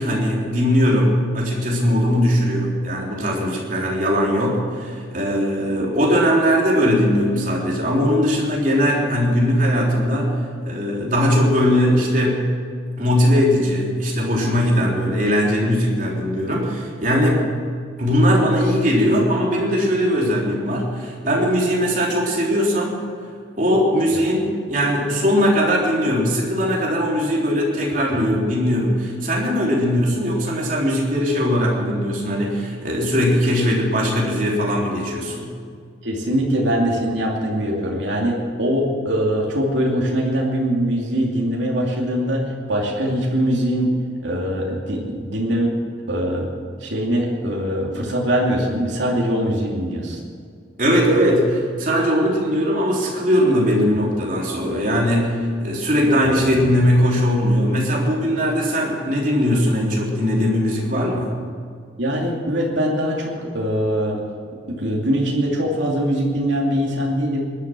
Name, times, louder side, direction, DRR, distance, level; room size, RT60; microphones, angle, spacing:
voice 1, 0.0-12.5 13.0-17.5 18.0-23.0 23.6-35.5 50.8-61.4, equal, 45° right, -2 dB, 3.6 m, -20 dB
voice 2, 36.0-43.9 44.2-45.7 46.1-50.2 56.2-56.4 62.0-64.2 64.7-67.4, equal, 85° right, -2 dB, 2.7 m, -22 dB
20.0 x 11.5 x 6.2 m, 2.2 s
head